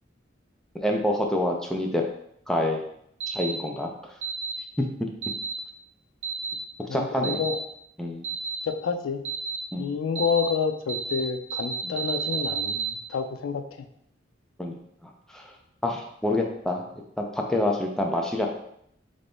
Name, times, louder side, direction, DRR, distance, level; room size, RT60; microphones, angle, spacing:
voice 1, 0.7-2.0 2.5-2.8 3.3-3.9 6.9-7.4 8.0-8.2 9.7-9.9 11.8-11.9 14.6-14.7 15.3-15.4 15.8-16.8 17.2-18.5, left 1 dB, 5° left, 1 dB, 0.4 m, -27 dB
sound 1, 3.2-3.5 4.2-4.5 5.2-5.5 6.2-6.5 7.2-7.5 8.2-8.6 9.2-9.6 10.2-10.5 10.9-11.2 11.5-12.9, right 6 dB, 65° right, 0.7 m, -30 dB
voice 2, 6.9-7.6 8.7-9.2 9.8-13.9 16.4-16.5, left 6 dB, 85° left, 7 dB, 0.4 m, -29 dB
3.3 x 2.6 x 3.4 m, 0.72 s
head